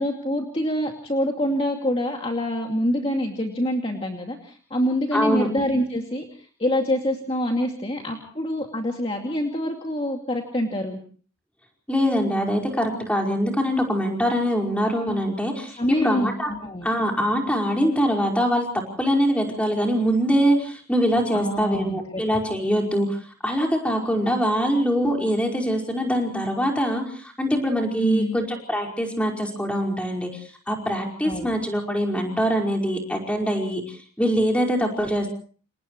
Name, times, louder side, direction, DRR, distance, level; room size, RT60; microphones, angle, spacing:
voice 1, 0.0-11.0 15.8-16.9 21.3-22.2 28.0-28.4 31.2-31.5, equal, 25° left, 2 dB, 2.5 m, -26 dB
voice 2, 5.1-5.5 11.9-16.5 16.8-18.7 19.0-23.2 23.4-35.3, equal, 5° left, 1 dB, 5.2 m, -23 dB
29.0 x 29.0 x 3.2 m, 0.44 s
head